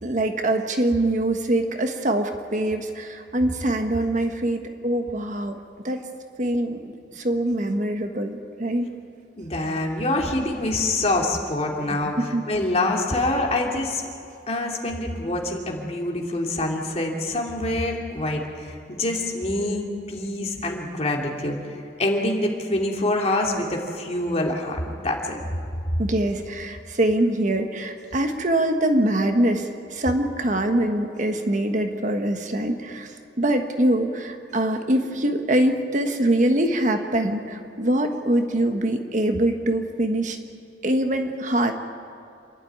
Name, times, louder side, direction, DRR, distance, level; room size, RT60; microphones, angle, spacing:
voice 1, 0.0-5.6 5.8-6.0 6.4-8.9 11.9-12.5 26.0-40.4 40.8-41.7, right 1 dB, 45° right, 5 dB, 1.4 m, -24 dB
voice 2, 9.4-12.2 12.5-14.0 14.5-21.6 22.0-25.4, left 2 dB, 35° left, 0 dB, 2.8 m, -25 dB
27.5 x 12.0 x 9.5 m, 2.5 s
head